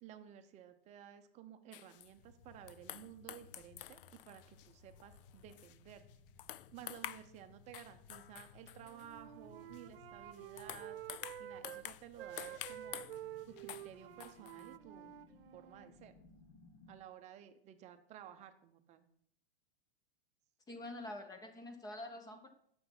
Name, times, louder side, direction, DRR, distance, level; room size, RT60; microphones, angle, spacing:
voice 1, 0.0-6.0 6.7-11.0 11.4-13.1 13.5-15.1 15.5-16.1 16.9-19.1, right 10 dB, 25° right, 8 dB, 0.7 m, -54 dB
sound 1, 1.7-2.1 2.7-6.1 6.4-7.4 7.7-9.1 9.7-9.8 10.3-13.9 14.2-14.8, left 13 dB, 65° left, 0.5 m, -49 dB
sound 2, 1.9-16.9, left 4 dB, 40° left, 1.4 m, -62 dB
Wind instrument woodwind instrument, 8.8-11.9 12.2-15.9, right 11 dB, 75° right, 0.8 m, -50 dB
voice 2, 20.7-22.5, left 1 dB, 15° left, 8 dB, 0.9 m, -46 dB
9.2 x 7.0 x 5.9 m, 0.69 s
supercardioid pair, 155°, 29 cm